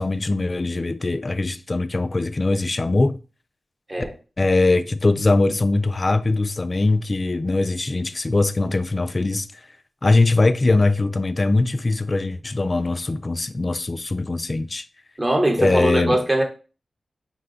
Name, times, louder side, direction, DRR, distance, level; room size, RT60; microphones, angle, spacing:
voice 1, 0.0-3.2 4.4-9.5 10.0-14.8 15.6-16.2, left 2 dB, 30° left, 0.3 m, -21 dB
voice 2, 15.2-16.4, right 1 dB, 20° right, 0.9 m, -21 dB
5.6 x 2.2 x 3.8 m
wide cardioid pair, 130°, 0 cm